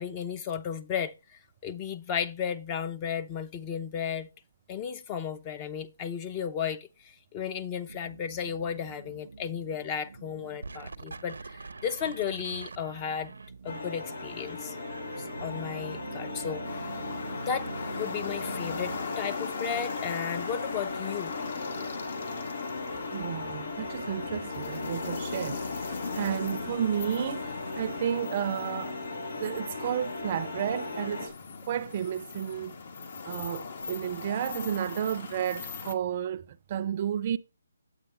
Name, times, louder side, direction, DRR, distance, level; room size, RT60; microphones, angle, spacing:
voice 1, 0.0-4.3 4.7-13.3 13.6-14.8 15.4-16.9 17.4-17.7 17.9-21.3, left 7 dB, 25° left, 0.6 m, -34 dB
sound 1, 7.9-19.0, right 4 dB, 80° right, 0.8 m, -44 dB
sound 2, 13.7-31.3, left 3 dB, 85° left, 5.2 m, -38 dB
sound 3, 16.6-35.9, left 4 dB, 55° left, 1.3 m, -39 dB
voice 2, 23.1-29.0 29.4-31.3 31.7-32.7 33.2-37.4, right 9 dB, 35° right, 0.5 m, -32 dB
8.8 x 8.1 x 3.3 m
hypercardioid pair, 155°, 0 cm